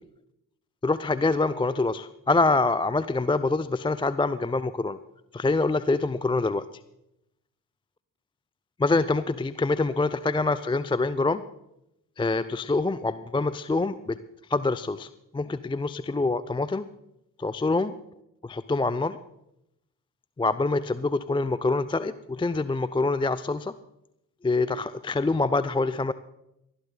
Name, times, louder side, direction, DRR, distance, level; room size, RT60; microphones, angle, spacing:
voice 1, 0.8-5.0 5.3-6.6 8.8-11.4 12.2-14.2 14.5-16.9 17.4-17.9 18.4-19.2 20.4-23.7 24.4-26.1, left 3 dB, 10° left, 15 dB, 0.5 m, -25 dB
19.0 x 11.5 x 3.8 m, 0.84 s
hypercardioid pair, 40°, 48 cm